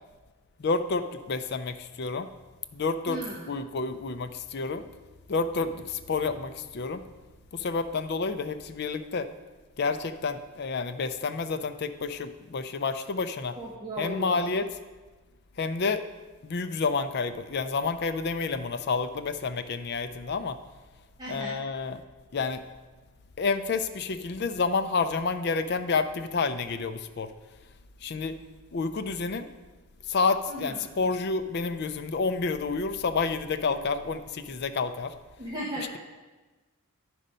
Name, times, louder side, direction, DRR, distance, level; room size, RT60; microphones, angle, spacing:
voice 1, 0.6-2.3 2.7-3.2 3.5-4.8 5.3-7.0 7.5-9.3 9.8-13.6 14.0-14.7 15.6-16.0 16.4-20.6 21.3-22.0 22.3-22.6 23.4-27.3 28.0-28.4 28.7-29.5 30.1-35.1, left 4 dB, 50° left, 11 dB, 0.4 m, -29 dB
voice 2, 3.1-3.4 13.6-14.5 21.2-21.6 30.5-30.8 35.4-36.0, equal, 20° right, -5 dB, 1.0 m, -36 dB
10.0 x 5.1 x 5.4 m, 1.3 s
head